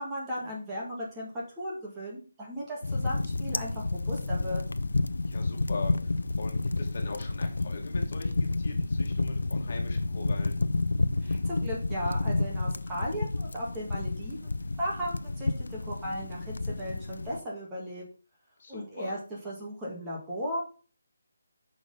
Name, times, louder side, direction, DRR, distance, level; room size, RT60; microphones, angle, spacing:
voice 1, 0.0-4.6 11.2-14.5 14.8-18.0 18.7-19.2 19.4-20.6, equal, 10° right, -5 dB, 2.1 m, -36 dB
sound 1, 2.8-17.4, left 2 dB, 85° left, 0.6 m, -30 dB
voice 2, 5.3-10.6 18.6-19.1, left 3 dB, 45° left, 2 dB, 2.5 m, -41 dB
6.3 x 6.3 x 5.5 m, 0.37 s
hypercardioid pair, 170°, 0 cm